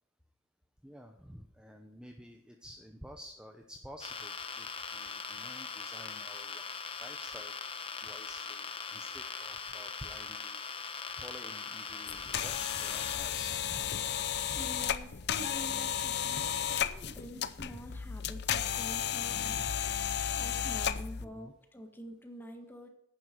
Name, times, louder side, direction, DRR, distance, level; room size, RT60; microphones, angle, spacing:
voice 1, 0.8-6.6 7.0-7.5 8.0-10.6 11.2-14.0 17.6-17.8 19.3-19.7 21.2-21.5, equal, 5° right, 3 dB, 0.9 m, -50 dB
sound 1, 4.0-13.2, left 5 dB, 30° left, 1.0 m, -41 dB
sound 2, 12.1-21.2, left 9 dB, 55° left, 0.6 m, -33 dB
voice 2, 14.2-19.6 20.4-22.9, equal, 10° left, 4 dB, 1.6 m, -47 dB
11.5 x 9.7 x 4.6 m, 0.75 s
head